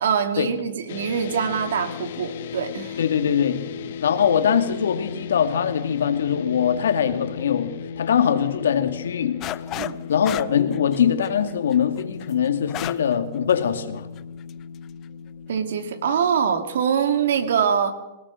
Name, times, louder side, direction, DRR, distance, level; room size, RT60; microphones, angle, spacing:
voice 1, 0.0-3.0 3.8-3.9 9.8-10.0 15.5-17.9, right 7 dB, 75° right, 2.6 m, -24 dB
sound 1, 0.9-17.2, left 7 dB, 65° left, 1.1 m, -37 dB
voice 2, 3.0-3.7 4.0-9.4 10.1-14.1, left 8 dB, 85° left, 2.2 m, -22 dB
sound 2, 9.4-10.0 10.2-13.1 13.5-13.6 14.2-14.5, left 14 dB, 30° left, 0.6 m, -32 dB
23.5 x 17.5 x 6.4 m
hypercardioid pair, 145°, 0 cm